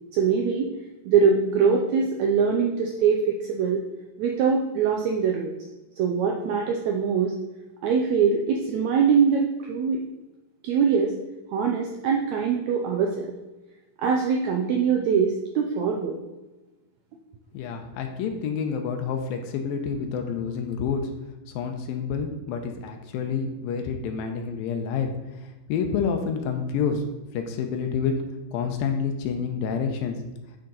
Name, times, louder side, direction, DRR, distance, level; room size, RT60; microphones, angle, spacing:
voice 1, 0.1-0.7 1.0-3.8 4.2-5.5 6.0-7.3 7.8-10.0 10.6-11.1 11.5-13.3 14.0-16.2, right 6 dB, 90° right, 1 dB, 1.5 m, -23 dB
voice 2, 17.5-21.1 21.5-25.1 25.7-27.0 27.3-28.1 28.5-30.2, left 6 dB, 85° left, 4 dB, 2.5 m, -28 dB
10.0 x 5.1 x 3.9 m, 1.1 s
omnidirectional pair, 4.1 m